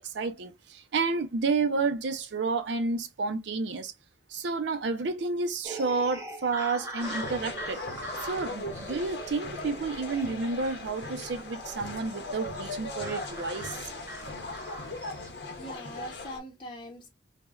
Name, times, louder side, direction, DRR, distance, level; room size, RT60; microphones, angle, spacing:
voice 1, 0.0-3.9 4.3-7.8 8.2-13.9, right 4 dB, 75° right, 0.4 m, -30 dB
sound 1, 5.6-15.3, right 1 dB, 15° right, 0.7 m, -42 dB
sound 2, 7.0-16.4, left 2 dB, 65° left, 0.7 m, -39 dB
voice 2, 15.4-17.1, equal, 25° left, 0.7 m, -42 dB
3.3 x 2.1 x 2.2 m
head